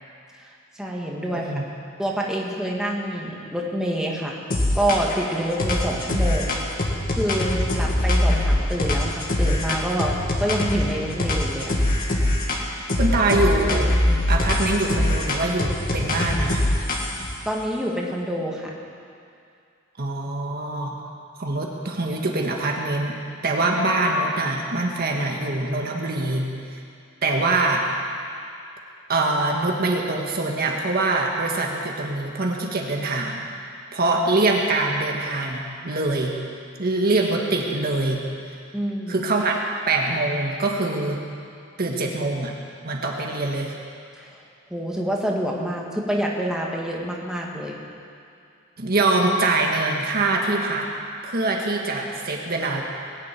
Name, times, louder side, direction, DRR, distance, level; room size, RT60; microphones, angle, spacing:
voice 1, 0.7-1.5 2.0-4.4 4.7-6.5 7.2-11.7 17.5-18.7 38.7-39.3 44.2-44.4 44.7-47.8, equal, 5° right, -2 dB, 1.9 m, -27 dB
voice 2, 1.3-1.7 13.0-13.9 14.3-16.6 20.0-21.0 21.4-23.1 23.4-26.8 27.2-27.8 29.1-33.4 33.9-36.4 36.8-38.2 39.1-41.2 41.8-42.6 42.8-43.7 48.8-50.9 51.2-52.8, right 2 dB, 50° right, 0 dB, 1.6 m, -24 dB
sound 1, 4.5-5.2 5.6-10.9 11.2-12.6 12.9-17.3, left 1 dB, 45° left, 2.0 m, -22 dB
20.5 x 7.6 x 9.2 m, 2.4 s
head